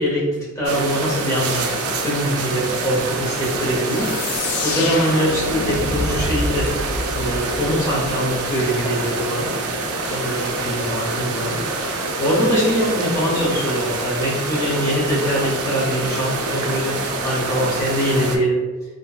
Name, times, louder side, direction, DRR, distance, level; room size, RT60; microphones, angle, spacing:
voice 1, 0.0-1.7 2.0-6.7 7.1-9.5 10.1-11.6 12.2-17.0 17.2-18.6, equal, 15° left, -7 dB, 0.8 m, -23 dB
sound 1, 0.6-18.4, right 2 dB, 75° right, 0.4 m, -26 dB
sound 2, 3.8-8.4, left 3 dB, 70° left, 0.3 m, -28 dB
2.8 x 2.5 x 2.3 m, 1.3 s
head